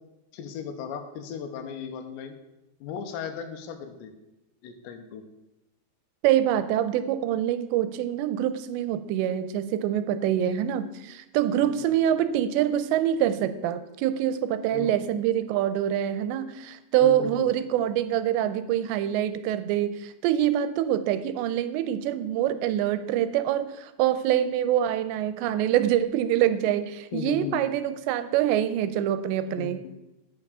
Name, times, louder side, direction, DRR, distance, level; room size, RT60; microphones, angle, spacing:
voice 1, 0.3-2.4 2.8-4.1 4.6-5.2 11.6-11.8 14.7-14.9 17.0-17.5 27.1-27.6 29.6-29.9, left 7 dB, 85° left, 7 dB, 3.1 m, -36 dB
voice 2, 6.2-29.8, right 11 dB, 90° right, 12 dB, 2.8 m, -25 dB
8.8 x 5.9 x 6.6 m, 0.94 s
omnidirectional pair, 5.0 m